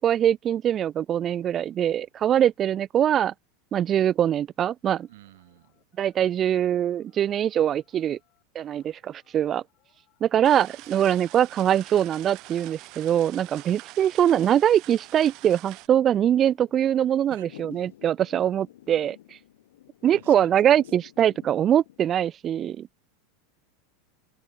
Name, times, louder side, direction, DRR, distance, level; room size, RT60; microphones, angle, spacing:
voice 1, 0.0-3.3 3.7-5.1 6.0-8.2 8.6-9.6 10.2-19.2 20.0-22.9, right 10 dB, 30° right, 0.3 m, -23 dB
sound 1, 4.9-12.4, left 19 dB, 50° left, 7.0 m, -68 dB
voice 2, 5.1-5.8 10.9-11.2 17.3-17.5 20.2-20.9, right 17 dB, 75° right, 5.2 m, -51 dB
sound 2, 10.4-15.9, right 22 dB, 50° right, 3.1 m, -45 dB
Thunder / Rain, 15.0-22.0, left 14 dB, 80° left, 1.7 m, -50 dB
supercardioid pair, 125°, 0 cm